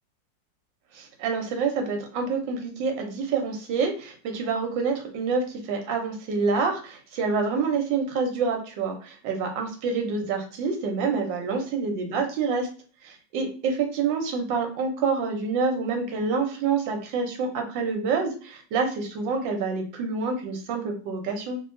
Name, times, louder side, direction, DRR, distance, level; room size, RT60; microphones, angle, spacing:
voice 1, 0.9-12.7 13.0-21.6, right 4 dB, 80° right, 4 dB, 1.4 m, -27 dB
3.0 x 2.7 x 2.5 m, 0.39 s
omnidirectional pair, 2.0 m